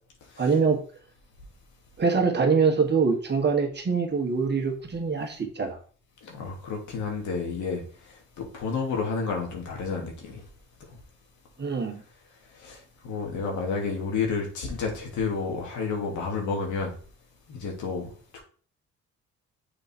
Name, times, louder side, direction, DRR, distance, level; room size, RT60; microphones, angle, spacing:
voice 1, 0.4-0.8 2.0-5.8 11.6-12.0, right 5 dB, 35° right, 1.6 m, -24 dB
voice 2, 6.2-7.8 8.4-10.4 12.6-12.8 13.0-16.9 17.5-18.4, left 4 dB, 75° left, 2.3 m, -30 dB
6.9 x 4.0 x 4.4 m
cardioid pair, 90°, 30 cm